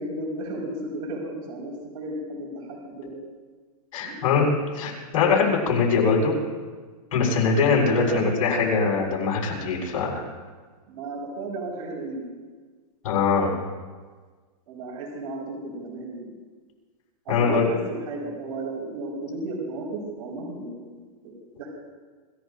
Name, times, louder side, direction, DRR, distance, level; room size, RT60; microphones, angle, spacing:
voice 1, 0.0-3.3 4.0-4.4 7.9-8.6 10.9-12.3 14.7-16.3 17.3-17.8 18.1-21.7, right 2 dB, 60° right, -2 dB, 5.3 m, -34 dB
voice 2, 3.9-6.3 7.1-10.1 13.0-13.5 17.3-17.7, left 5 dB, 55° left, -4 dB, 6.4 m, -22 dB
27.5 x 15.5 x 2.7 m, 1.4 s
supercardioid pair, 165°, 20 cm